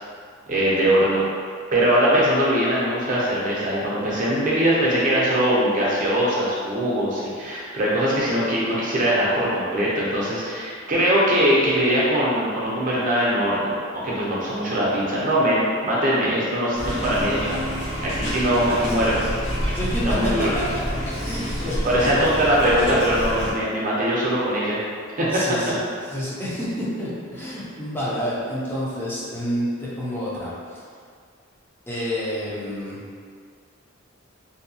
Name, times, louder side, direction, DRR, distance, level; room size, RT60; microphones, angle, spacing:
voice 1, 0.5-1.2 1.7-13.8 14.0-17.6 18.0-19.1 20.0-20.5 21.8-24.8 25.2-25.3, equal, 40° right, -6 dB, 0.6 m, -21 dB
sound 1, 16.7-23.5, equal, 75° left, 0.8 m, -28 dB
voice 2, 19.7-20.8 21.2-22.4 25.3-30.8 31.9-33.0, equal, 10° left, -8 dB, 0.5 m, -29 dB
2.6 x 2.2 x 2.7 m, 2.1 s
head